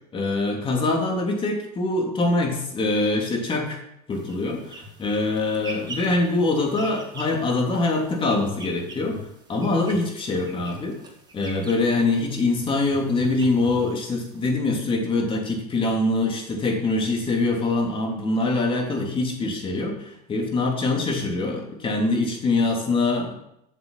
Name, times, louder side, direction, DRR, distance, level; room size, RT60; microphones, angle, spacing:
voice 1, 0.1-3.8 4.1-9.2 9.5-10.9 11.3-23.3, left 2 dB, 25° left, 1 dB, 3.1 m, -24 dB
sound 1, 4.1-14.5, right 1 dB, 20° right, 3.3 m, -42 dB
8.3 x 7.3 x 7.2 m, 0.80 s
supercardioid pair, 115°, 20 cm